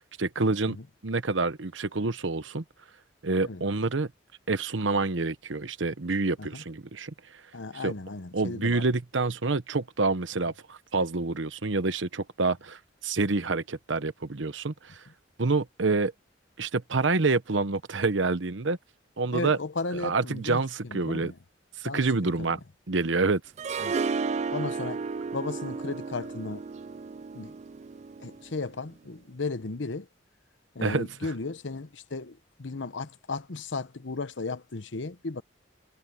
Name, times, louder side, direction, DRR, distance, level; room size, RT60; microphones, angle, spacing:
voice 1, 0.0-0.8 1.0-2.6 3.2-4.1 4.5-7.1 7.8-7.9 8.3-15.0 15.4-16.1 16.6-18.8 19.2-19.6 20.0-21.3 21.8-22.6 22.9-23.4 23.8-23.9 30.8-31.1, right 3 dB, 85° right, 1.0 m, -27 dB
voice 2, 7.5-8.8 19.3-21.4 21.8-22.6 23.8-24.0 24.5-25.0 25.3-26.6 27.3-27.5 28.2-30.1 30.7-35.4, left 3 dB, 80° left, 1.0 m, -35 dB
Harp, 23.6-28.6, right 5 dB, 35° right, 0.3 m, -33 dB
head